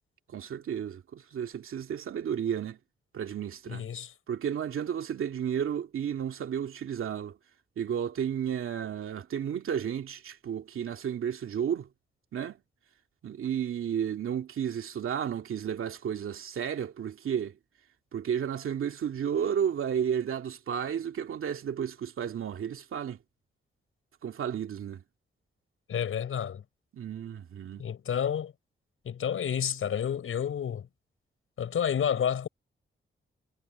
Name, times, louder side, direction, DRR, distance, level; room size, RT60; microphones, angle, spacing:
voice 1, 0.3-2.8 3.1-3.8 4.3-7.3 7.8-11.9 12.3-12.6 13.2-17.6 18.1-23.2 24.2-25.0 26.9-27.9, right 8 dB, 90° right, 2.2 m, -32 dB
voice 2, 3.7-4.1 25.9-26.6 27.8-28.5 29.1-30.9 31.6-32.5, left 8 dB, 85° left, 5.4 m, -30 dB
cardioid pair, 95°, 21 cm